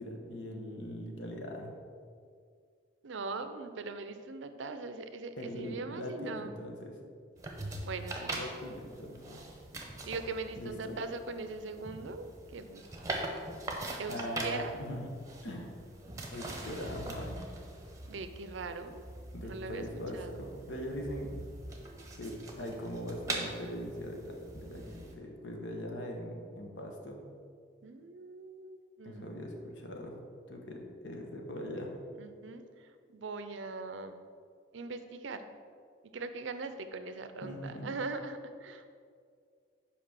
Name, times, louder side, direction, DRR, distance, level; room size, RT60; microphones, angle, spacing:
voice 1, 0.0-1.8 5.4-7.0 8.3-9.4 10.6-11.0 14.1-15.1 15.4-15.7 16.3-17.5 19.3-21.4 22.1-27.2 29.0-30.2 30.5-32.0 37.4-37.9, equal, 75° left, 2 dB, 1.1 m, -41 dB
voice 2, 3.0-6.5 7.8-8.4 10.0-12.8 13.1-13.3 14.0-14.8 18.1-19.0 19.4-19.8 20.1-20.4 27.8-29.4 32.2-34.2 34.7-35.4 36.1-39.0, right 3 dB, 80° right, 9 dB, 0.5 m, -41 dB
sound 1, 7.4-25.1, right 2 dB, 15° right, 0.8 m, -42 dB
5.9 x 4.9 x 6.4 m, 2.2 s
head